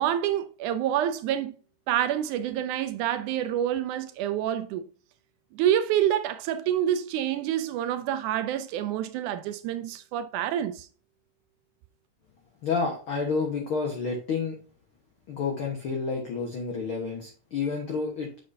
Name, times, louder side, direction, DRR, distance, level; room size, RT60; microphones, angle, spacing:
voice 1, 0.0-1.6 1.9-4.9 5.5-10.9, right 11 dB, 80° right, 1.8 m, -27 dB
voice 2, 12.6-14.6 15.3-18.3, left 4 dB, 50° left, 1.6 m, -29 dB
7.5 x 7.4 x 2.7 m
omnidirectional pair, 3.9 m